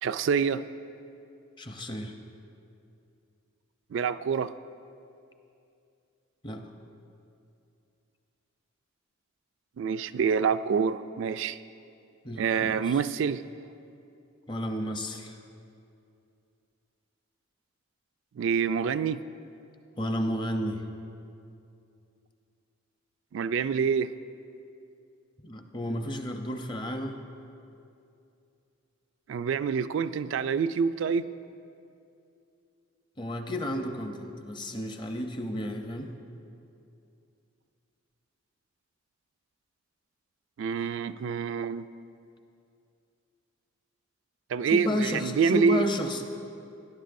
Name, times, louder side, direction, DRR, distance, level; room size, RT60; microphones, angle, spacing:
voice 1, 0.0-0.6 3.9-4.5 9.8-11.6 12.4-13.4 18.4-19.2 23.3-24.1 29.3-31.2 40.6-41.9 44.5-45.8, right 6 dB, 60° right, 13 dB, 0.3 m, -26 dB
voice 2, 1.6-2.1 6.4-6.6 12.2-13.0 14.5-15.4 20.0-20.8 25.4-27.2 33.2-36.1 44.6-46.4, left 1 dB, 20° left, 5 dB, 0.6 m, -32 dB
17.5 x 10.5 x 2.6 m, 2.6 s
head